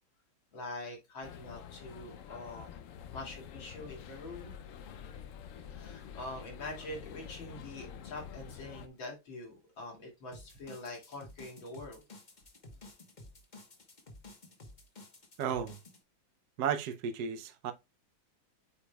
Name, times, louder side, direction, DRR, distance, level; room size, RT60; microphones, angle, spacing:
voice 1, 0.5-2.7 3.1-4.5 5.7-12.0, left 2 dB, 70° left, 3.3 m, -44 dB
sound 1, 1.2-8.9, left 8 dB, 85° left, 0.7 m, -48 dB
sound 2, 10.3-16.0, left 2 dB, 30° left, 1.0 m, -53 dB
voice 2, 15.4-15.8 16.6-17.7, right 7 dB, 65° right, 1.1 m, -33 dB
8.4 x 5.0 x 2.3 m
omnidirectional pair, 2.2 m